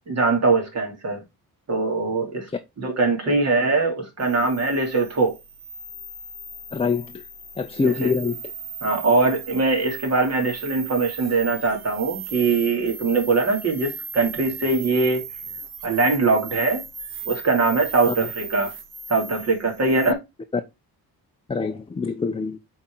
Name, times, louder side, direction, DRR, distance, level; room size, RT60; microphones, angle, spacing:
voice 1, 0.1-1.2 1.7-2.5 2.8-5.3 7.8-8.1 8.8-15.2 15.8-16.8 17.2-18.7 19.1-20.2, right 3 dB, 45° right, 2.9 m, -22 dB
sound 1, 4.2-20.1, right 5 dB, 70° right, 1.9 m, -37 dB
voice 2, 6.7-7.2 7.6-8.4 18.1-18.3 20.5-20.6 21.5-22.6, left 4 dB, 15° left, 0.6 m, -25 dB
8.6 x 4.3 x 3.9 m
cardioid pair, 135°, 38 cm